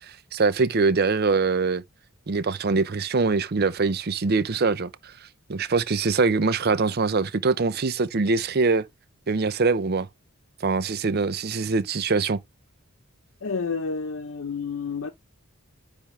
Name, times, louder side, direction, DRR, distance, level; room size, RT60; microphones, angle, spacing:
voice 1, 0.1-1.8 2.3-5.1 5.5-8.8 9.3-10.1 10.6-12.4, right 4 dB, 45° right, 0.6 m, -23 dB
voice 2, 13.4-15.1, left 5 dB, 70° left, 0.7 m, -30 dB
10.0 x 3.6 x 3.1 m
head